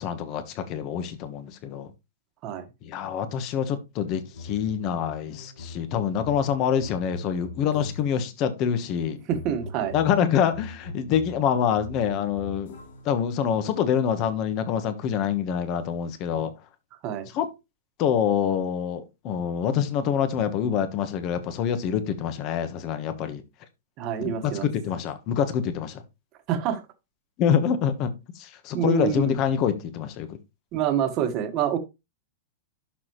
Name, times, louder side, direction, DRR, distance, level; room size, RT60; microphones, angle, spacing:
voice 1, 0.0-1.9 2.8-9.2 9.9-12.7 13.0-16.5 17.3-17.5 18.0-23.4 24.2-24.3 24.6-26.0 27.4-30.4, left 8 dB, 35° left, 1.3 m, -26 dB
sound 1, 4.0-8.3 8.9-13.2, left 3 dB, 75° left, 3.2 m, -42 dB
voice 2, 9.3-9.9 17.0-17.3 24.0-24.7 26.5-26.8 28.7-29.3 30.7-31.8, right 9 dB, 35° right, 1.6 m, -26 dB
12.0 x 4.1 x 3.1 m
hypercardioid pair, 155°, 0 cm